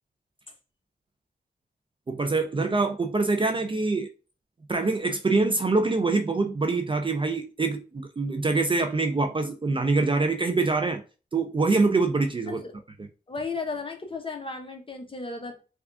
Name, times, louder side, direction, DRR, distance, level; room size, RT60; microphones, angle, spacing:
voice 1, 2.1-4.1 4.7-11.0 11.3-12.6, right 3 dB, 30° right, 0.4 m, -24 dB
voice 2, 12.5-12.8 13.3-15.6, left 4 dB, 30° left, 0.8 m, -35 dB
3.4 x 2.4 x 3.5 m
wide cardioid pair, 100°, 18 cm